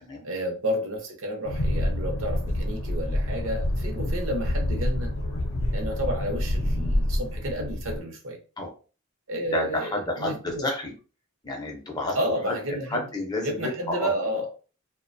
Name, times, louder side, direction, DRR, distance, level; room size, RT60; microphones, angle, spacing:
voice 1, 0.2-5.1 5.7-8.4 9.3-10.6 12.1-13.1 13.4-14.5, equal, 65° right, 0.7 m, -31 dB
sound 1, 1.4-8.0, left 1 dB, 65° left, 0.6 m, -27 dB
voice 2, 9.5-10.9 11.4-12.2 12.5-12.6 12.9-14.1, left 2 dB, 20° left, 0.5 m, -30 dB
2.4 x 2.1 x 2.5 m
head